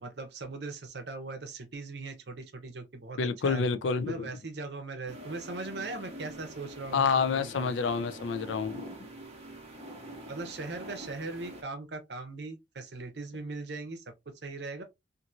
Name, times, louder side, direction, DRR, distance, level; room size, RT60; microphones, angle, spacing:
voice 1, 0.0-3.2 3.4-3.6 4.0-7.7 10.3-14.0 14.4-14.8, right 3 dB, 65° right, 0.7 m, -39 dB
voice 2, 3.2-4.3 6.9-8.9, left 5 dB, 90° left, 0.4 m, -28 dB
sound 1, 5.1-11.6, right 1 dB, 35° right, 0.8 m, -45 dB
2.8 x 2.6 x 2.4 m
head